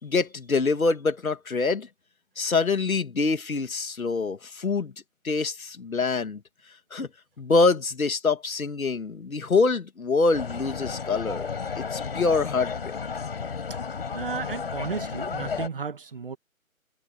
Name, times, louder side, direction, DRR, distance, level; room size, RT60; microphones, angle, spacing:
voice 1, 0.0-1.9 2.4-4.9 5.2-6.4 6.9-7.1 7.4-11.5 11.7-13.0, left 4 dB, 75° left, 2.7 m, -25 dB
sound 1, 10.3-15.7, left 5 dB, 45° left, 5.8 m, -33 dB
voice 2, 14.1-16.4, right 5 dB, 40° right, 1.8 m, -33 dB
hypercardioid pair, 175°, 42 cm